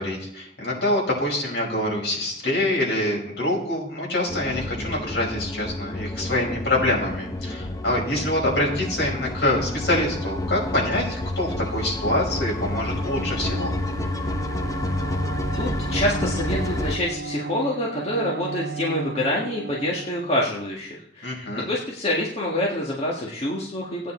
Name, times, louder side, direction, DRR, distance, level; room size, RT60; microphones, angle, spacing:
voice 1, 0.0-13.7 21.2-21.7, left 1 dB, 70° left, -3 dB, 5.6 m, -25 dB
sound 1, 4.3-17.0, left 1 dB, 20° left, 0.8 m, -29 dB
Bowed string instrument, 12.3-20.7, right 4 dB, 70° right, 1.0 m, -35 dB
voice 2, 15.6-21.4 21.7-24.1, left 1 dB, 35° left, -3 dB, 1.8 m, -26 dB
16.5 x 9.3 x 4.4 m, 0.71 s
head